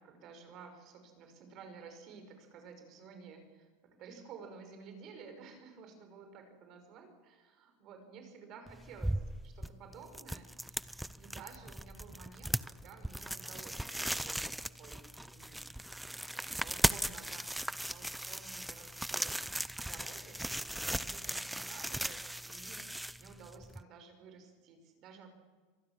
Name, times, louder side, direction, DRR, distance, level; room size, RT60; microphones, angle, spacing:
voice 1, 0.0-15.7 16.5-17.5 17.9-20.4 20.6-25.3, right 5 dB, 50° right, 6 dB, 5.6 m, -53 dB
sound 1, 8.7-23.8, right 1 dB, 5° right, 0.6 m, -38 dB
25.0 x 19.0 x 7.5 m, 1.4 s
supercardioid pair, 110°, 0 cm